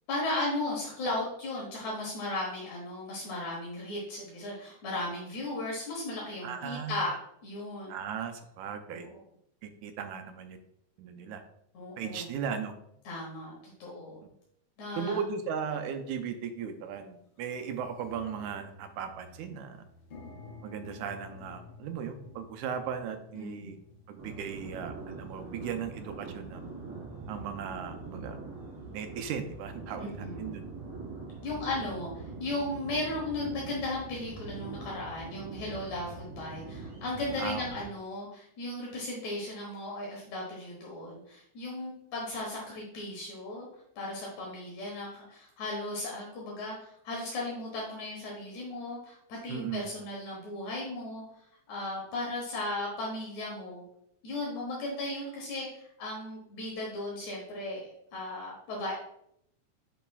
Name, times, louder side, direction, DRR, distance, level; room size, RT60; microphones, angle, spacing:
voice 1, 0.1-7.1 7.4-8.0 8.9-9.2 11.7-12.3 13.0-14.2 14.8-15.2 23.3-23.8 30.0-30.5 31.4-43.7 44.0-53.8 54.2-58.9, left 2 dB, 75° left, -4 dB, 2.6 m, -36 dB
voice 2, 6.4-7.1 7.9-9.1 9.6-10.6 11.0-11.4 12.0-12.7 15.0-19.8 20.6-23.8 24.1-26.6 27.3-28.4 28.9-30.6 37.4-37.8 49.5-49.9, right 7 dB, 85° right, 7 dB, 2.1 m, -37 dB
sound 1, 15.0-15.1 15.9-16.1 16.5-16.6 16.9-26.6, left 3 dB, 55° left, 2.5 m, -52 dB
sound 2, 24.2-37.9, right 3 dB, 40° right, 3.0 m, -43 dB
7.1 x 6.0 x 2.3 m, 0.74 s
omnidirectional pair, 3.3 m